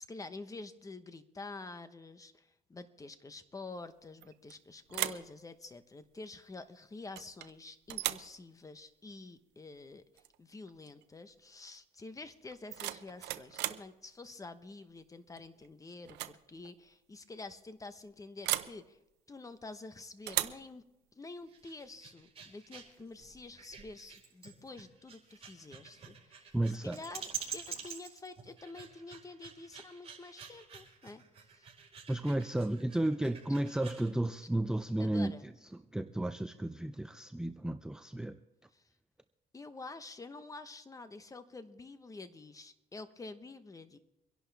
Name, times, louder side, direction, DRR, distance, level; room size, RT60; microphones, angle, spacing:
voice 1, 0.0-10.0 10.4-19.0 19.3-20.8 21.1-31.2 31.5-31.7 35.0-35.4 38.7-38.8 39.5-44.0, left 3 dB, 20° left, 10 dB, 1.1 m, -48 dB
sound 1, 4.2-4.6 4.9-5.3 7.1-7.5 7.9-8.3 10.2-10.3 10.7-11.0 12.5-13.9 15.4-15.7 16.0-16.4 16.6-16.7 18.4-18.8 20.3-20.7, right 15 dB, 85° right, 0.7 m, -36 dB
sound 2, 21.4-34.1, right 7 dB, 35° right, 4.5 m, -48 dB
voice 2, 26.5-27.0 32.1-35.3 35.7-38.4, right 1 dB, 5° right, 9 dB, 0.4 m, -33 dB
25.0 x 11.0 x 3.5 m, 0.91 s
cardioid pair, 110°, 17 cm